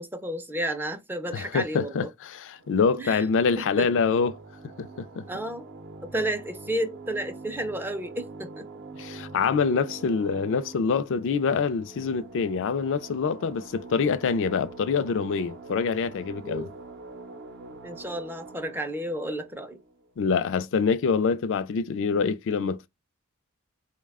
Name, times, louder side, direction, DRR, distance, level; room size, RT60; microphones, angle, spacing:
voice 1, 0.0-2.1 3.0-3.2 3.6-3.9 5.3-5.7 6.0-8.7 16.4-16.7 17.8-19.8, right 1 dB, 10° right, 0.4 m, -32 dB
voice 2, 1.3-4.4 4.8-5.2 9.0-16.7 20.2-22.9, left 5 dB, 60° left, 0.4 m, -25 dB
sound 1, 2.5-20.7, right 3 dB, 50° right, 0.6 m, -45 dB
4.0 x 2.1 x 3.5 m
head